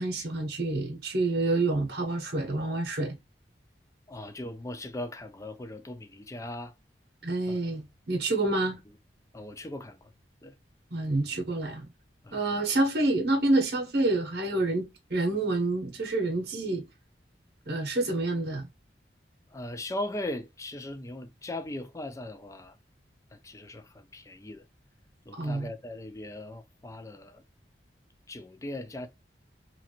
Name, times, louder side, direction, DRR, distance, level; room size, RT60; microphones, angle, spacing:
voice 1, 0.0-3.2 7.2-8.8 10.9-11.8 12.3-16.8 17.6-18.7 25.4-25.7, right 2 dB, 60° right, 0.8 m, -28 dB
voice 2, 4.1-6.7 7.5-7.6 8.4-8.6 9.3-10.1 10.4-10.5 12.2-12.4 19.5-22.8 23.3-24.6 25.3-27.4 28.3-29.1, left 1 dB, 20° left, 0.4 m, -39 dB
2.9 x 2.5 x 2.8 m
head